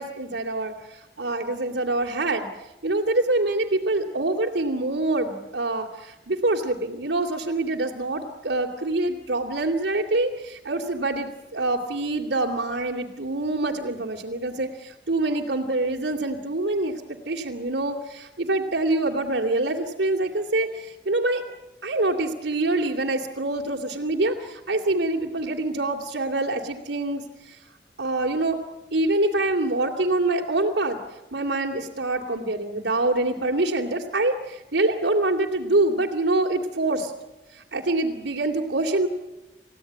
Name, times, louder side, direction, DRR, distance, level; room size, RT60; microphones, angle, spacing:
voice 1, 0.0-2.5 2.8-21.4 21.8-27.6 28.0-28.6 28.9-31.0 31.3-37.1 37.5-39.1, right 2 dB, 90° right, -1 dB, 2.8 m, -25 dB
29.0 x 16.0 x 9.9 m, 1.0 s
head